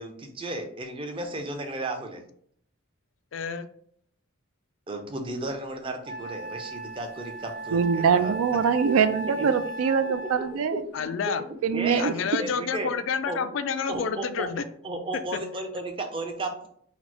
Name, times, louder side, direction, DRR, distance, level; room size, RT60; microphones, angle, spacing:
voice 1, 0.0-2.2 4.9-8.4 9.4-9.7 10.7-11.3 11.7-12.9 13.3-13.4 13.9-14.5 14.8-16.7, right 2 dB, 25° right, 4 dB, 0.5 m, -34 dB
voice 2, 3.3-3.7 10.9-11.4 12.0-14.6, left 6 dB, 60° left, 11 dB, 0.3 m, -29 dB
Wind instrument woodwind instrument, 5.4-5.5 6.0-10.7, right 2 dB, 65° right, 1.3 m, -36 dB
voice 3, 7.7-10.8 11.6-12.1, right 6 dB, 80° right, 12 dB, 0.3 m, -23 dB
4.1 x 2.0 x 4.4 m, 0.66 s
head